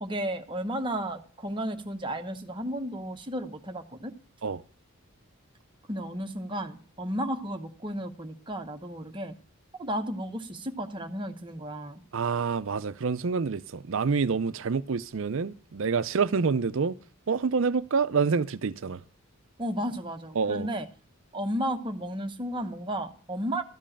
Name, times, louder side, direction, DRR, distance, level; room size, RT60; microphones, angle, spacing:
voice 1, 0.0-4.1 5.9-9.3 9.8-12.0 19.6-20.9 21.3-23.6, equal, 20° right, 0.9 m, -33 dB
voice 2, 12.1-17.0 17.3-19.0 20.4-20.7, right 5 dB, 60° right, 0.5 m, -27 dB
13.0 x 5.4 x 8.6 m
head